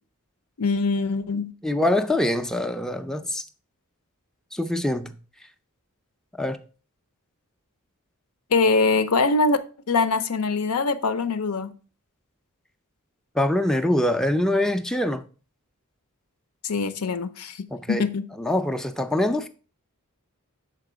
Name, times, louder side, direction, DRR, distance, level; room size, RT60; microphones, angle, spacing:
voice 1, 0.6-1.5 8.5-11.7 16.6-18.2, left 3 dB, 80° left, 0.6 m, -23 dB
voice 2, 1.6-3.4 4.5-5.1 6.4-6.6 13.4-15.2 17.7-18.0 18.4-19.5, left 1 dB, ahead, 0.4 m, -24 dB
6.6 x 4.6 x 4.9 m
head